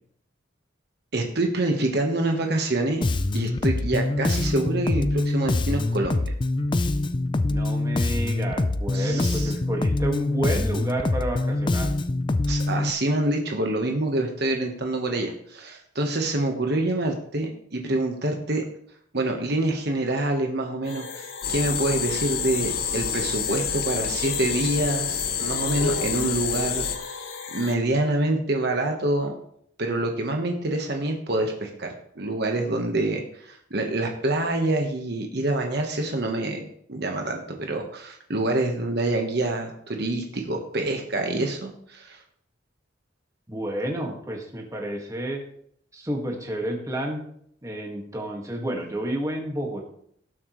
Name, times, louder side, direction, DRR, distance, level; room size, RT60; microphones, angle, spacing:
voice 1, 1.1-3.1 3.3-6.3 8.9-9.5 12.5-18.6 19.1-27.2 27.5-29.4 29.8-31.9 32.2-42.2, right 2 dB, 55° right, 3 dB, 1.3 m, -26 dB
Bass guitar, 3.0-12.9, left 2 dB, 25° left, 0.4 m, -24 dB
voice 2, 7.5-11.9 43.5-45.4 45.9-47.2 47.6-49.8, right 1 dB, 15° right, 0 dB, 1.9 m, -30 dB
sound 1, 20.8-27.7, left 5 dB, 80° left, 1.4 m, -38 dB
sound 2, 21.4-27.0, left 7 dB, 50° left, 0.9 m, -28 dB
18.0 x 7.6 x 3.2 m, 0.67 s
head